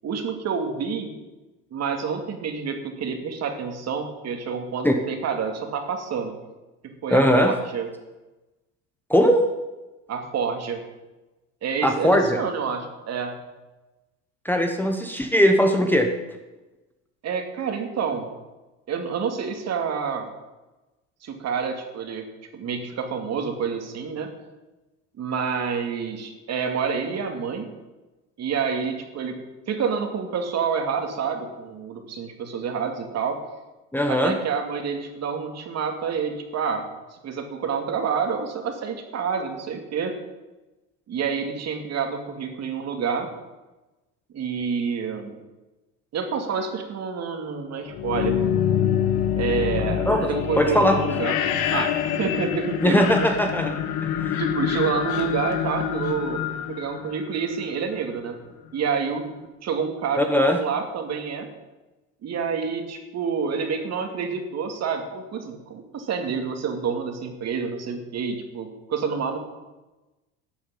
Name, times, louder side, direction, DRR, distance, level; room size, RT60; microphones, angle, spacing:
voice 1, 0.0-1.1 1.7-6.3 6.8-7.9 10.1-10.8 11.6-13.3 17.2-18.3 18.9-20.3 21.2-22.3 22.5-24.3 25.2-27.7 28.4-29.4 29.7-33.4 34.1-36.9 37.2-40.1 41.1-43.3 44.3-45.4 46.1-48.4 49.3-51.4 51.7-53.1 54.4-56.4 56.7-58.4 58.7-59.3 59.6-61.5 62.2-69.4, right 6 dB, 45° right, 5 dB, 2.4 m, -28 dB
voice 2, 7.1-7.5 9.1-9.4 11.8-12.4 14.4-16.1 33.9-34.3 50.1-50.3 50.6-50.9 52.8-53.8 54.2-54.4 60.2-60.6, equal, 5° left, 4 dB, 1.2 m, -19 dB
sound 1, 47.9-57.7, left 9 dB, 75° left, 1.5 m, -26 dB
12.5 x 7.2 x 8.8 m, 1.1 s
cardioid pair, 115°, 36 cm